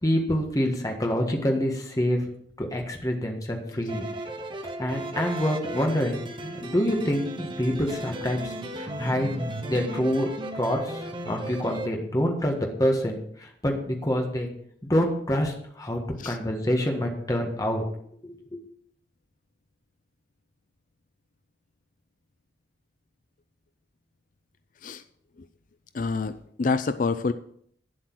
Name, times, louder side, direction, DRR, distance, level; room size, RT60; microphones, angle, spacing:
voice 1, 0.0-2.2 2.6-4.0 4.8-8.5 8.8-9.4 9.6-10.3 10.5-14.5 14.8-17.8 18.2-18.6, equal, 20° left, 2 dB, 1.6 m, -26 dB
sound 1, 3.9-11.9, right 1 dB, 30° right, 1.0 m, -35 dB
voice 2, 25.9-27.3, left 4 dB, 50° left, 11 dB, 0.5 m, -27 dB
9.2 x 7.8 x 6.2 m, 0.66 s
head